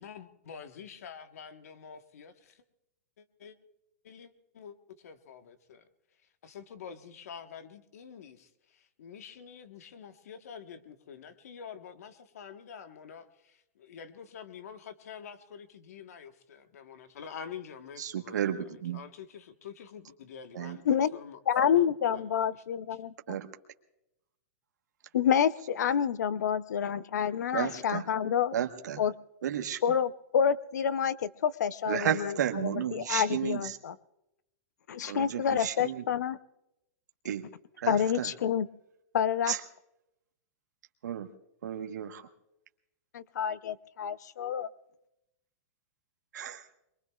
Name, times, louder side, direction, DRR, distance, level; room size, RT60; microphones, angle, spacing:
voice 1, 0.0-2.6 3.2-3.6 4.0-5.9 6.4-20.8 21.1-21.9 22.1-22.6 22.9-23.0, left 7 dB, 60° left, 9 dB, 1.3 m, -47 dB
voice 2, 18.0-19.0 20.5-20.8 23.3-23.5 27.5-28.1 28.5-29.0 29.4-29.8 31.9-33.7 35.1-36.0 37.2-37.4 37.8-38.3 39.5-39.6 41.0-41.3 41.6-42.2 46.3-46.6, right 10 dB, 80° right, 6 dB, 1.2 m, -33 dB
voice 3, 21.5-23.4 25.1-28.5 29.0-29.1 29.8-33.9 34.9-36.4 37.9-38.7 39.1-39.5 43.1-44.7, left 8 dB, 75° left, 16 dB, 0.6 m, -28 dB
24.0 x 22.5 x 2.4 m, 0.88 s
supercardioid pair, 180°, 9 cm